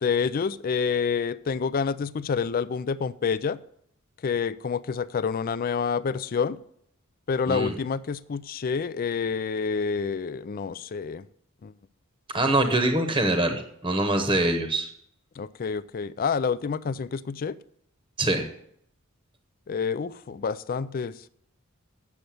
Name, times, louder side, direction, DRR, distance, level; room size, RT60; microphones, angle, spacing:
voice 1, 0.0-3.6 4.2-6.6 7.3-11.3 11.6-11.7 15.4-17.6 19.7-21.2, left 5 dB, 40° left, 18 dB, 0.4 m, -28 dB
voice 2, 12.3-14.9 18.2-18.4, right 1 dB, 20° right, 6 dB, 1.0 m, -24 dB
8.5 x 6.6 x 7.7 m, 0.69 s
head